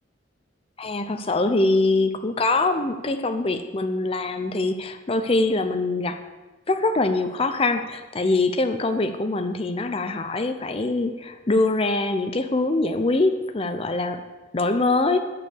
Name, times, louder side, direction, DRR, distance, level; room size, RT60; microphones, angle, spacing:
voice 1, 0.8-6.2 6.7-14.2 14.5-15.2, left 2 dB, 30° left, 7 dB, 0.6 m, -23 dB
11.5 x 6.5 x 6.9 m, 1.2 s
head